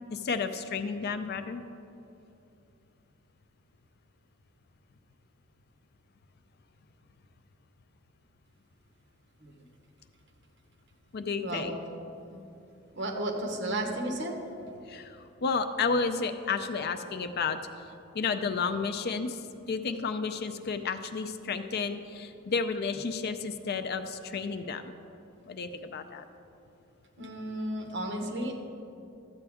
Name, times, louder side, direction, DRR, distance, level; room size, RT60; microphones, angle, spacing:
voice 1, 0.1-1.6 11.1-11.8 14.9-17.6 18.1-24.9 25.5-26.2, left 5 dB, 50° left, 9 dB, 0.5 m, -32 dB
voice 2, 11.4-11.7 12.3-12.4 12.9-14.3 27.2-28.5, right 1 dB, 60° right, 2 dB, 1.2 m, -33 dB
13.0 x 7.9 x 3.6 m, 2.7 s
head